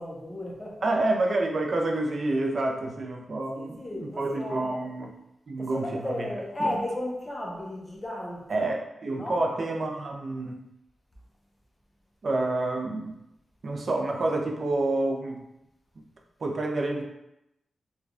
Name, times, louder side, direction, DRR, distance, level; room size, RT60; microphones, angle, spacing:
voice 1, 0.0-0.8 3.5-4.9 5.6-8.7 9.2-9.4, left 1 dB, 20° left, -2 dB, 0.6 m, -34 dB
voice 2, 0.8-5.1 5.5-6.7 8.5-10.7 12.2-13.1 13.6-15.4 16.4-17.0, right 2 dB, 55° right, 2 dB, 0.4 m, -28 dB
3.2 x 2.2 x 2.4 m, 0.86 s
wide cardioid pair, 115°, 0 cm